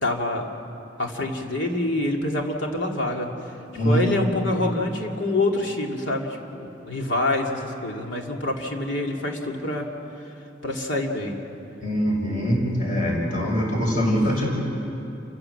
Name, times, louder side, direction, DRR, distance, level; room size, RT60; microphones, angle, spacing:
voice 1, 0.0-0.5 1.0-3.5 3.8-9.9 10.6-11.3, left 1 dB, 85° left, 1 dB, 2.5 m, -26 dB
voice 2, 11.8-14.5, equal, 45° left, -2 dB, 6.2 m, -23 dB
28.5 x 15.5 x 7.9 m, 2.9 s
head